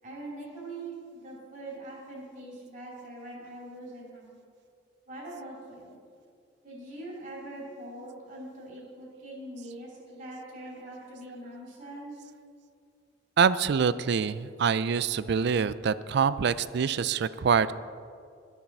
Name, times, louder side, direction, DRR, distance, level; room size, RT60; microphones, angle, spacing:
voice 1, 0.0-4.3 5.1-5.9 6.6-12.2, right 1 dB, 45° right, -5 dB, 3.0 m, -43 dB
voice 2, 13.4-17.7, right 6 dB, 60° right, 16 dB, 0.4 m, -25 dB
13.0 x 7.3 x 6.0 m, 2.3 s
head